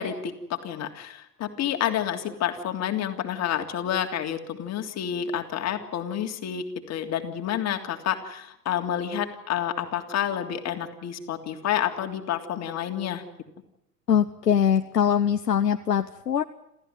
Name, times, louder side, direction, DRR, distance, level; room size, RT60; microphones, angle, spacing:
voice 1, 0.0-13.2, left 10 dB, 35° left, 5 dB, 3.2 m, -29 dB
voice 2, 14.1-16.4, left 8 dB, 90° left, 8 dB, 1.0 m, -22 dB
28.0 x 15.0 x 9.3 m, 0.81 s
hypercardioid pair, 95°, 47 cm